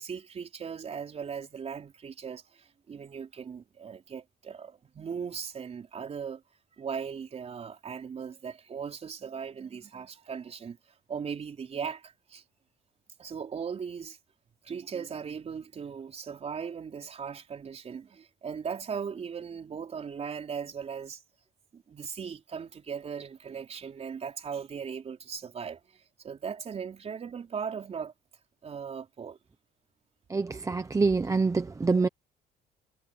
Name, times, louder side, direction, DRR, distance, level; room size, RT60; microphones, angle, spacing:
voice 1, 0.0-6.4 6.8-10.8 11.1-12.4 13.2-14.2 14.6-21.2 21.7-28.1 28.6-29.4, right 6 dB, 40° right, 4.4 m, -38 dB
voice 2, 30.3-32.1, right 4 dB, 20° right, 0.9 m, -26 dB
cardioid pair, 110°, 17 cm